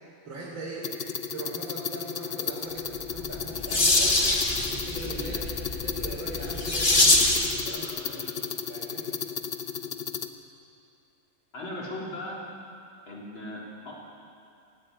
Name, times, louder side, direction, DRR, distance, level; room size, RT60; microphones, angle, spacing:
voice 1, 0.2-0.9 1.3-4.2 4.6-7.4 7.6-9.1, right 3 dB, 75° right, -5 dB, 4.0 m, -40 dB
sound 1, 0.8-10.3, left 7 dB, 55° left, 0.7 m, -34 dB
sound 2, 3.1-7.6, left 2 dB, 25° left, 2.1 m, -24 dB
voice 2, 11.5-12.4 13.1-13.9, left 1 dB, 80° left, -4 dB, 4.5 m, -37 dB
17.5 x 17.0 x 9.7 m, 2.5 s
omnidirectional pair, 2.1 m